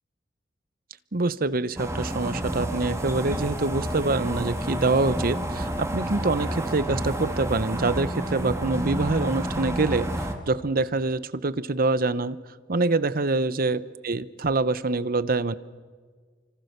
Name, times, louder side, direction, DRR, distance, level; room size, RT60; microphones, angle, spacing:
voice 1, 1.1-12.4 12.7-15.6, right 3 dB, 50° right, 16 dB, 0.9 m, -25 dB
sound 1, 1.8-10.3, right 1 dB, 15° right, 2.4 m, -30 dB
30.0 x 25.5 x 6.8 m, 1.5 s
head